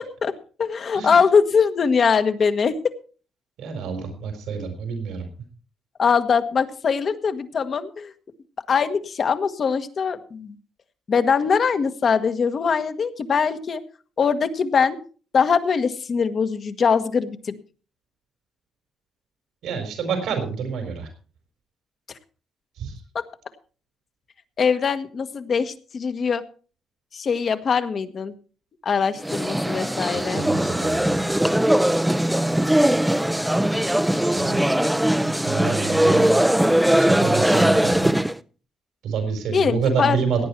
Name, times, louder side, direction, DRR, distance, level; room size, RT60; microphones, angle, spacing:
voice 1, 0.6-2.7 6.0-8.1 8.7-10.6 11.1-13.8 14.2-15.0 15.3-17.6 24.6-26.4 27.1-28.3 28.8-30.4 39.5-40.2, left 6 dB, 50° left, 9 dB, 1.4 m, -22 dB
voice 2, 3.6-5.3 19.6-21.1 22.8-23.0 30.3-31.2 34.3-34.7 35.2-36.5 36.9-38.1 39.0-40.5, right 6 dB, 80° right, 6 dB, 4.2 m, -28 dB
sound 1, 29.2-38.4, right 1 dB, 5° right, 0.7 m, -20 dB
17.0 x 9.3 x 4.5 m, 0.39 s
cardioid pair, 90°, 0 cm